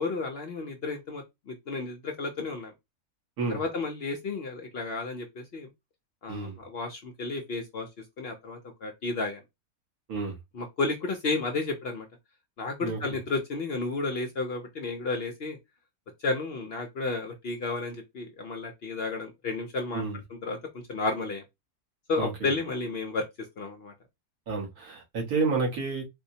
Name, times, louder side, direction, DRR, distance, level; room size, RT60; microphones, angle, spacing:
voice 1, 0.0-2.7 3.5-5.7 6.2-7.9 8.2-9.4 10.5-12.1 12.6-15.6 16.2-20.0 20.4-20.6 20.9-21.4 22.1-23.2 23.6-23.9, left 3 dB, 55° left, 0.7 m, -32 dB
voice 2, 6.3-6.6 10.1-10.3 12.8-13.0 19.9-20.2 22.2-22.5 24.5-26.0, right 4 dB, 80° right, 1.7 m, -30 dB
4.2 x 2.0 x 2.7 m
omnidirectional pair, 1.5 m